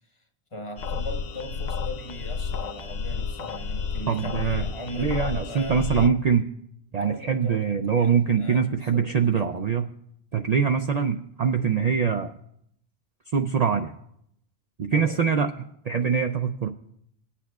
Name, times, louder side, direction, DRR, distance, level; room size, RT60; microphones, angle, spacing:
voice 1, 0.5-5.8 7.0-9.5 14.9-15.2, equal, 30° left, 4 dB, 1.0 m, -39 dB
sound 1, 0.8-6.1, left 5 dB, 55° left, 0.6 m, -31 dB
voice 2, 4.1-4.6 5.0-6.5 6.9-9.8 10.3-12.3 13.3-13.9 14.8-15.5 15.8-16.7, right 6 dB, 50° right, 5 dB, 0.5 m, -23 dB
20.5 x 8.4 x 2.3 m, 0.73 s
omnidirectional pair, 1.0 m